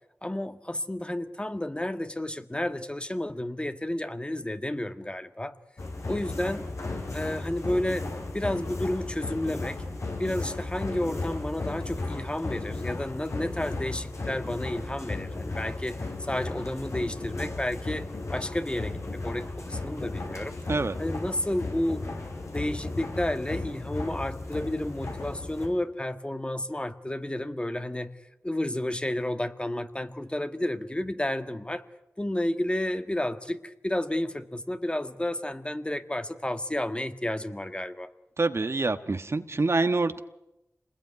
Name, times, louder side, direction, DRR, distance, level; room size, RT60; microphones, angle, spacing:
voice 1, 0.2-5.5 6.1-6.7 7.1-8.1 8.3-9.8 10.2-20.6 21.0-22.1 22.5-28.1 28.4-31.8 32.2-38.1, left 1 dB, 20° left, 9 dB, 1.7 m, -31 dB
sound 1, 5.8-25.7, left 2 dB, 75° left, 5.8 m, -35 dB
voice 2, 38.4-40.2, right 3 dB, 60° right, 9 dB, 1.5 m, -26 dB
27.0 x 21.0 x 9.6 m, 0.92 s
cardioid pair, 45°, 5 cm